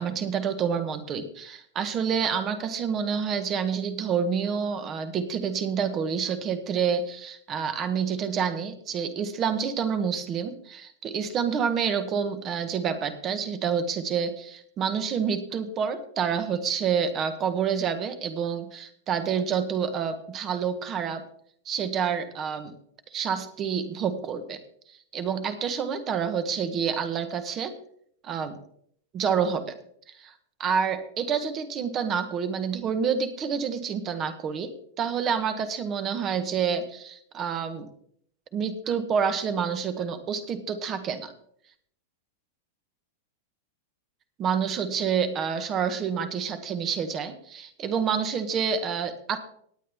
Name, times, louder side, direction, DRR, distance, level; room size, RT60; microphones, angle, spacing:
voice 1, 0.0-21.2 21.6-22.8 23.1-24.6 24.9-27.7 28.2-28.6 29.1-29.8 30.2-30.3 30.6-37.9 38.5-41.3 44.4-49.4, right 7 dB, 20° right, 10 dB, 1.0 m, -28 dB
18.5 x 8.4 x 3.5 m, 0.65 s
supercardioid pair, 180°, 0 cm